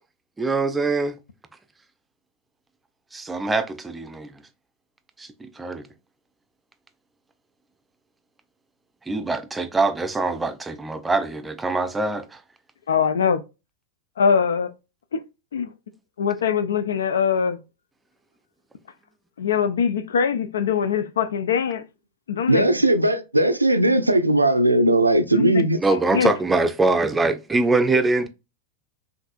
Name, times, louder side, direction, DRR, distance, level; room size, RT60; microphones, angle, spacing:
voice 1, 0.4-1.2 3.1-4.3 5.2-5.9 9.1-12.4 25.8-28.3, right 3 dB, 10° right, 0.5 m, -23 dB
voice 2, 12.9-13.4 14.2-14.7 15.1-15.2 15.5-15.7 16.2-17.6 19.4-21.8 22.3-22.7 23.9-24.0 25.3-26.3, left 7 dB, 65° left, 0.4 m, -23 dB
voice 3, 22.5-25.8, right 1 dB, 85° right, 0.5 m, -18 dB
5.8 x 2.6 x 2.5 m
figure-of-eight pair, 90°, 0 cm